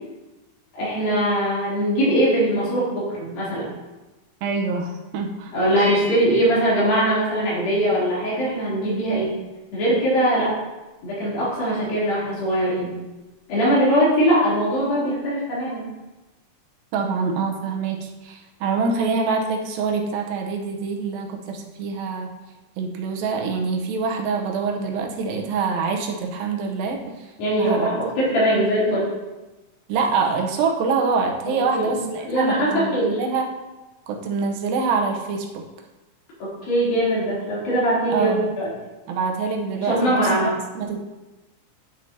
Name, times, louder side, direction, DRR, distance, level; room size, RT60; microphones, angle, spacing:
voice 1, 0.7-3.7 5.5-9.4 9.7-10.6 11.0-12.9 13.5-15.8 27.4-29.1 31.5-32.0 32.3-33.2 36.4-38.7 39.8-40.6, right 1 dB, 85° left, -8 dB, 5.0 m, -21 dB
voice 2, 4.4-5.5 16.9-22.3 22.8-27.0 27.6-28.0 29.9-33.5 34.1-35.6 38.1-38.5 39.1-41.0, right 4 dB, 85° right, 1 dB, 2.7 m, -25 dB
sound 1, 5.7-8.0, equal, 55° right, 3.5 m, -37 dB
11.0 x 6.3 x 2.8 m, 1.1 s
omnidirectional pair, 4.0 m